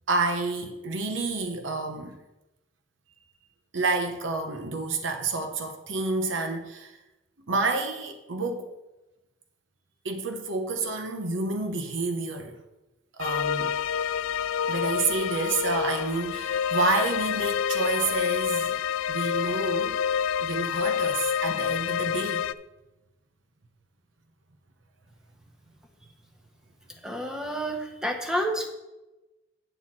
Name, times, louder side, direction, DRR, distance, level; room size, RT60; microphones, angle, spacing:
voice 1, 0.1-2.2 3.7-7.0 7.5-8.7 10.0-12.5 13.2-13.7 14.7-18.8 19.1-20.0 20.4-22.5, right 3 dB, 70° right, 0.9 m, -29 dB
sound 1, 13.2-22.5, left 8 dB, 85° left, 0.3 m, -28 dB
voice 2, 27.0-28.7, equal, 5° right, 1.0 m, -29 dB
9.3 x 4.2 x 7.4 m
head